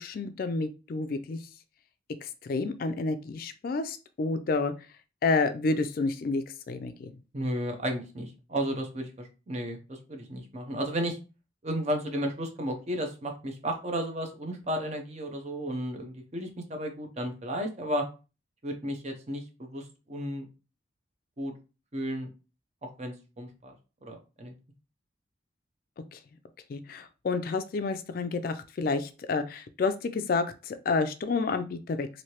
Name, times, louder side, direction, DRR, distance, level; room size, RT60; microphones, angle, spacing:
voice 1, 0.0-1.4 2.2-4.7 5.2-7.1 26.1-26.2 26.7-32.1, left 3 dB, 50° left, 10 dB, 0.3 m, -30 dB
voice 2, 7.3-11.2 11.6-18.1 18.6-20.4 21.4-21.5 21.9-22.3 22.8-23.7 24.0-24.5, equal, 35° right, 4 dB, 0.7 m, -33 dB
3.1 x 2.7 x 2.9 m, 0.32 s
head